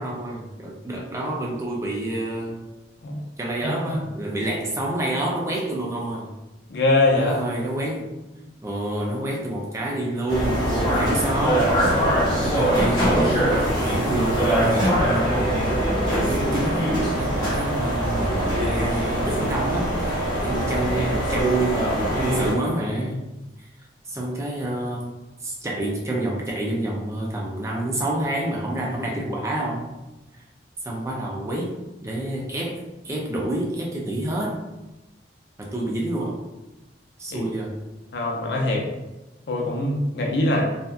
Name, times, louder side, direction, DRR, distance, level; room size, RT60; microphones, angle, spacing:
voice 1, 0.0-2.7 3.4-6.3 7.1-8.1 8.6-15.6 16.1-23.3 24.1-25.1 25.4-29.9 30.8-31.7 32.0-34.6 35.6-36.4 37.2-37.8, right 1 dB, 15° right, -2 dB, 0.3 m, -28 dB
voice 2, 6.7-7.3 37.3-37.4 38.1-38.9 39.5-40.7, left 2 dB, 70° left, 0 dB, 0.5 m, -22 dB
sound 1, 10.3-22.5, right 1 dB, 25° left, 0.8 m, -22 dB
2.7 x 2.2 x 2.3 m, 1.0 s
head